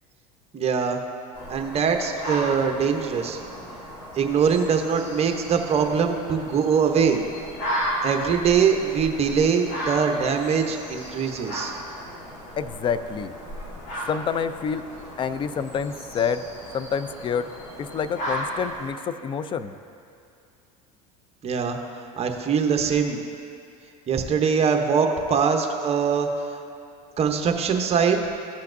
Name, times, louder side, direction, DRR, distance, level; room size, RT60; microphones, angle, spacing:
voice 1, 0.5-1.0 1.5-3.4 4.2-7.2 8.0-11.7 21.4-21.8 22.2-23.2 24.1-26.3 27.2-28.2, right 6 dB, 30° right, 4 dB, 0.8 m, -22 dB
sound 1, 1.3-18.9, equal, 70° left, 1.9 m, -35 dB
voice 2, 12.6-13.3 14.1-14.9 15.2-16.4 16.7-17.5 17.8-19.7, left 6 dB, 25° left, 12 dB, 0.4 m, -27 dB
14.0 x 5.7 x 2.6 m, 2.5 s
supercardioid pair, 110°, 20 cm